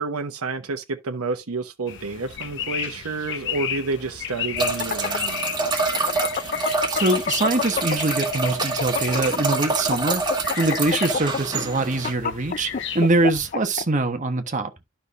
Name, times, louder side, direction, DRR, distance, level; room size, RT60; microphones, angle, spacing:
voice 1, 0.0-5.5, right 3 dB, 85° right, 0.9 m, -29 dB
sound 1, 1.9-13.5, left 8 dB, 60° left, 1.0 m, -34 dB
sound 2, 4.5-8.1 8.5-13.8, left 5 dB, 40° left, 0.5 m, -27 dB
sound 3, 4.6-12.1, right 3 dB, 20° right, 1.9 m, -26 dB
voice 2, 6.9-10.2 10.6-14.7, right 2 dB, 35° right, 1.2 m, -23 dB
12.0 x 5.7 x 2.6 m
head